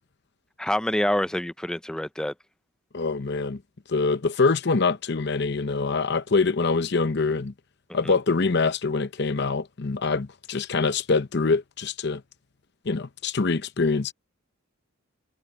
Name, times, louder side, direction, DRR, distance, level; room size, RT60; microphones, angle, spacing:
voice 1, 0.6-2.3 8.0-8.1, left 1 dB, 5° left, 0.3 m, -26 dB
voice 2, 2.9-3.6 3.9-7.5 7.9-12.2 12.9-14.1, left 4 dB, 55° left, 0.8 m, -24 dB
head